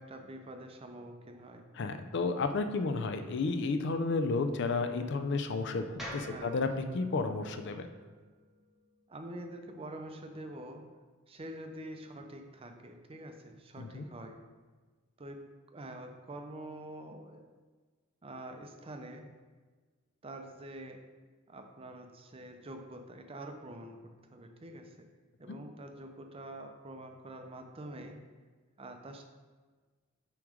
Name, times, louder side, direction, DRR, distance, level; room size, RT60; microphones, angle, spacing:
voice 1, 0.0-1.7 6.2-6.6 9.1-11.0 11.3-14.5 15.2-17.5 18.2-19.3 20.2-21.0 21.5-25.1 25.4-28.3 28.8-29.2, right 1 dB, 25° right, 5 dB, 0.5 m, -46 dB
voice 2, 1.8-7.9 13.8-14.0, left 3 dB, 55° left, 8 dB, 0.5 m, -32 dB
sound 1, 6.0-10.1, equal, ahead, 1.0 m, -49 dB
7.2 x 3.1 x 4.9 m, 1.4 s
head